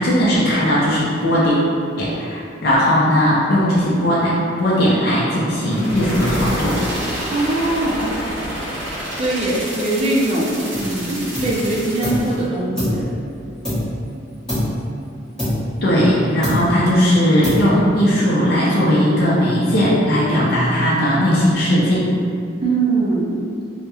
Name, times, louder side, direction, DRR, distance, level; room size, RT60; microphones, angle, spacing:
voice 1, 0.0-1.6 2.0-6.8 15.8-22.1, equal, 55° left, -7 dB, 0.4 m, -17 dB
sound 1, 5.6-12.4, equal, 70° right, 0.7 m, -28 dB
voice 2, 7.3-8.3 9.1-13.1 22.6-23.4, right 2 dB, 35° right, -5 dB, 0.4 m, -21 dB
sound 2, 10.7-11.0 11.3-12.3 12.8-14.1 14.5-14.9 15.4-16.1 16.4-16.9 17.4-18.0, left 1 dB, 5° left, 1.1 m, -25 dB
2.9 x 2.1 x 2.2 m, 2.4 s
head